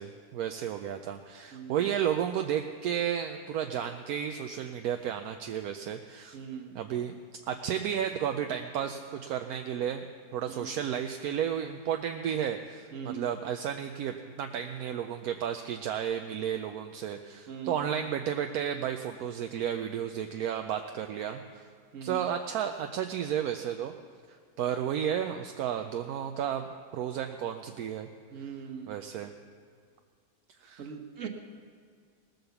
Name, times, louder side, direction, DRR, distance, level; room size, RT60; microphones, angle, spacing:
voice 1, 0.0-6.4 6.7-7.2 7.5-10.0 10.3-21.7 22.0-23.9 24.3-26.6 26.9-28.1 28.9-29.3 30.6-30.9, right 9 dB, 75° right, 6 dB, 1.1 m, -32 dB
voice 2, 1.5-1.9 6.3-6.8 10.5-10.7 12.9-13.3 17.5-17.8 21.9-22.2 28.3-29.0 30.8-31.3, right 7 dB, 55° right, 4 dB, 1.6 m, -40 dB
19.0 x 7.8 x 7.0 m, 2.1 s
omnidirectional pair, 1.7 m